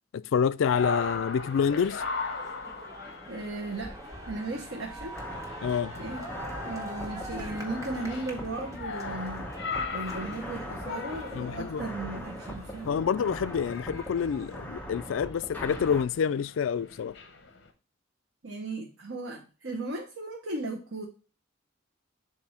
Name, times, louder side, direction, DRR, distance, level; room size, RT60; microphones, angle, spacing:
voice 1, 0.1-2.0 5.6-5.9 11.3-11.8 12.8-17.2, left 7 dB, 80° left, 0.3 m, -27 dB
sound 1, 0.6-14.8, equal, 15° right, 1.4 m, -45 dB
sound 2, 0.7-17.7, left 4 dB, 60° left, 1.1 m, -40 dB
voice 2, 3.3-4.0 4.3-5.1 6.0-6.2 6.6-9.5 9.9-12.9 18.4-21.0, right 2 dB, 80° right, 1.1 m, -36 dB
sound 3, 5.1-16.0, equal, 10° left, 1.0 m, -41 dB
7.4 x 2.7 x 5.6 m
head